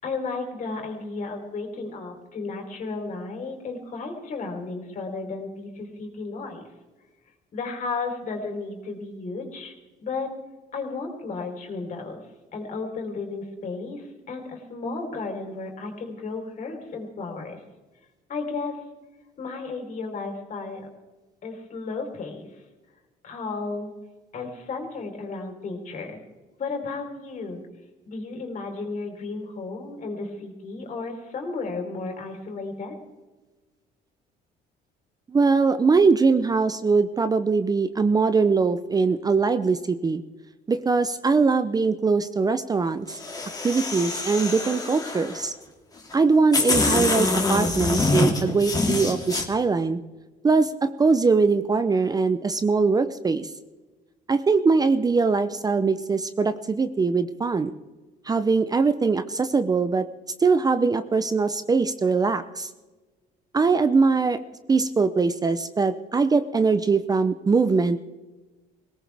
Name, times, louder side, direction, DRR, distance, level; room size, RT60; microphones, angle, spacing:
voice 1, 0.0-6.7 7.5-9.7 10.0-10.3 10.7-12.2 12.5-17.6 18.3-18.8 19.4-20.9 21.4-22.5 23.2-23.9 24.3-26.2 26.6-27.6 28.1-33.0, left 3 dB, 50° left, 2 dB, 3.9 m, -33 dB
voice 2, 35.3-40.2 40.7-43.2 43.6-45.5 46.1-50.0 50.4-50.7 51.0-53.5 54.3-57.7 58.3-60.1 60.4-62.7 63.5-64.4 64.7-68.0, right 4 dB, 20° right, 11 dB, 0.6 m, -22 dB
sound 1, 43.1-45.4 46.1-46.2 46.5-49.4, left 3 dB, 20° left, 2.4 m, -25 dB
20.5 x 18.0 x 3.5 m, 1.2 s
cardioid pair, 110°, 17 cm